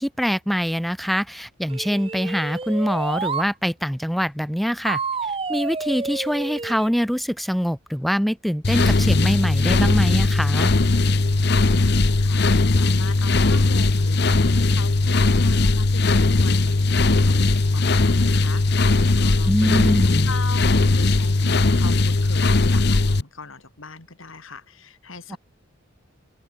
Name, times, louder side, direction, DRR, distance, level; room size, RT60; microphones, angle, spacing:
voice 1, 0.0-5.0 5.5-10.7 19.5-20.3 25.3-25.4, equal, ahead, 1.3 m, -24 dB
sound 1, 1.7-3.5 4.9-6.9, right 4 dB, 25° right, 0.7 m, -29 dB
sound 2, 8.6-23.2, left 2 dB, 55° left, 0.9 m, -19 dB
voice 2, 11.7-25.4, left 3 dB, 80° left, 3.2 m, -39 dB
open air
head